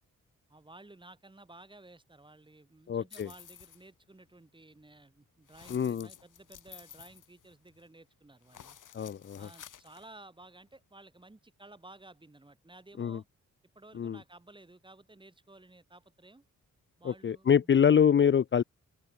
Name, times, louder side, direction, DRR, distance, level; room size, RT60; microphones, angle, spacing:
voice 1, 0.5-8.8 9.4-13.3 13.7-16.4 17.0-17.7, right 2 dB, 15° right, 4.2 m, -55 dB
voice 2, 2.9-3.3 5.7-6.1 8.9-9.5 13.0-13.2 14.0-14.2 17.0-18.6, left 8 dB, 40° left, 0.6 m, -25 dB
sound 1, 3.1-3.9 5.5-7.9 8.4-10.1, left 9 dB, 75° left, 6.6 m, -53 dB
open air
cardioid pair, 100°, 31 cm